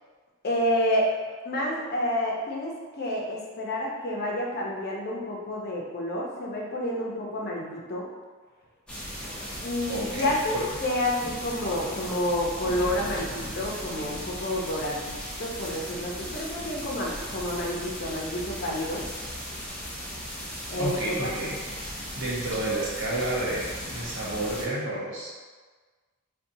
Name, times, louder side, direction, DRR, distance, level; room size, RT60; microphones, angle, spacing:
voice 1, 0.4-1.1 1.4-8.1 9.6-19.0 20.7-21.3, left 1 dB, 45° left, -3 dB, 0.6 m, -29 dB
sound 1, 8.9-24.6, equal, 5° left, 0.6 m, -37 dB
voice 2, 9.9-10.6 20.8-21.6 21.9-25.3, right 1 dB, 60° right, -6 dB, 0.9 m, -31 dB
4.0 x 2.2 x 2.6 m, 1.4 s
head